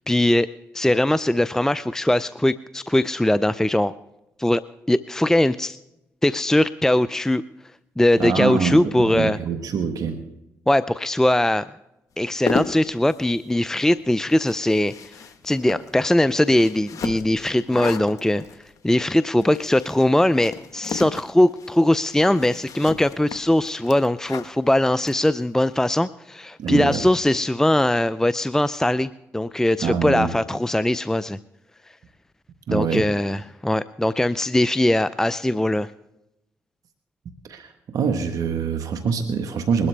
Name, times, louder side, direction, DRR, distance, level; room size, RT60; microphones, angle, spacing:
voice 1, 0.1-0.5 0.7-3.9 4.4-4.6 4.9-5.8 6.2-7.4 8.0-9.4 10.7-11.7 12.2-15.1 15.4-18.4 18.8-31.4 32.7-35.9, left 1 dB, 10° left, 15 dB, 0.5 m, -20 dB
voice 2, 8.2-10.2 26.6-27.1 29.8-30.3 32.7-33.0 37.5-39.9, right 6 dB, 70° right, 7 dB, 1.3 m, -25 dB
sound 1, 12.2-25.7, left 6 dB, 65° left, 1.3 m, -35 dB
21.5 x 12.5 x 3.3 m, 0.88 s
supercardioid pair, 55°, 6 cm